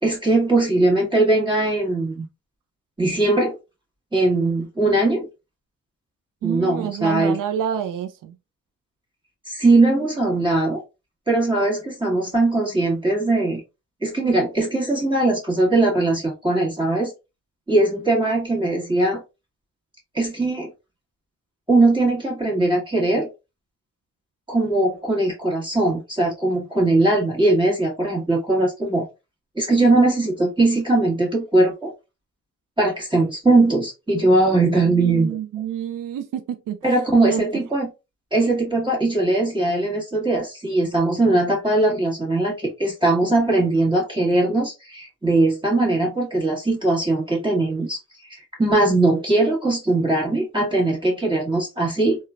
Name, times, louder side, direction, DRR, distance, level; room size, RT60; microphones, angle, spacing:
voice 1, 0.0-2.2 3.0-3.6 4.1-5.3 6.4-7.4 9.5-10.8 11.3-13.6 14.0-17.1 17.7-19.2 20.1-20.7 21.7-23.3 24.5-29.1 29.5-31.9 32.8-35.3 36.8-37.9 38.3-48.0 48.2-52.2, right 2 dB, 15° right, 1.4 m, -20 dB
voice 2, 6.4-8.3 34.8-36.8 37.2-37.6, right 9 dB, 75° right, 0.5 m, -28 dB
3.1 x 2.3 x 2.3 m
cardioid pair, 95°, 32 cm